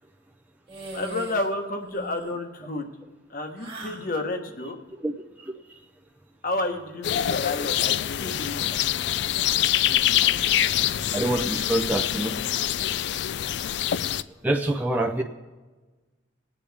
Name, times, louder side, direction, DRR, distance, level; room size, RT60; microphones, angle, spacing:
sound 1, 0.7-1.5 1.8-2.4 3.6-4.1, right 2 dB, 30° right, 1.7 m, -39 dB
voice 1, 0.9-2.9 3.3-4.8 6.4-8.6, left 2 dB, 45° left, 5 dB, 1.2 m, -30 dB
sound 2, 7.0-14.2, left 11 dB, 65° left, 0.3 m, -25 dB
voice 2, 11.1-12.3 14.4-15.2, right 1 dB, 10° right, 1 dB, 0.5 m, -25 dB
21.5 x 8.6 x 3.4 m, 1.3 s
head